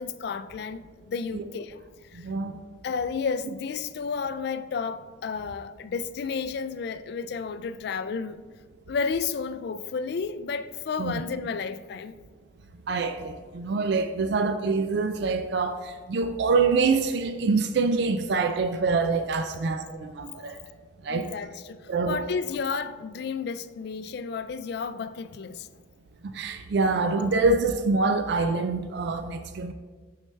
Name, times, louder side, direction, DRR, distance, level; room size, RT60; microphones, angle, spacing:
voice 1, 0.0-1.8 2.1-2.3 2.8-8.4 8.9-12.1 21.1-25.7, left 5 dB, 55° left, 0.3 m, -32 dB
voice 2, 2.1-2.6 11.0-11.2 12.9-20.6 21.0-21.3 21.9-22.2 22.7-22.8 26.3-29.7, right 4 dB, 60° right, 0.4 m, -25 dB
6.4 x 6.4 x 3.2 m
head